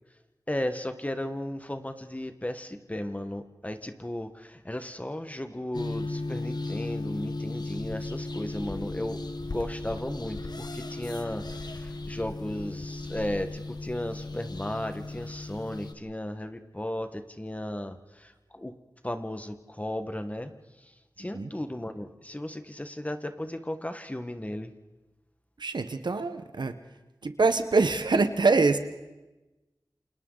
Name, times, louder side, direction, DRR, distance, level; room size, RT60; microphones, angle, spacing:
voice 1, 0.5-9.2 9.5-18.8 19.0-24.7, left 1 dB, 20° left, 8 dB, 1.5 m, -35 dB
sound 1, 5.7-15.9, left 2 dB, 65° left, 1.3 m, -36 dB
voice 2, 25.6-26.7 27.2-28.8, right 3 dB, 85° right, 9 dB, 1.2 m, -24 dB
28.5 x 27.5 x 4.0 m, 1.1 s
wide cardioid pair, 55°, 7 cm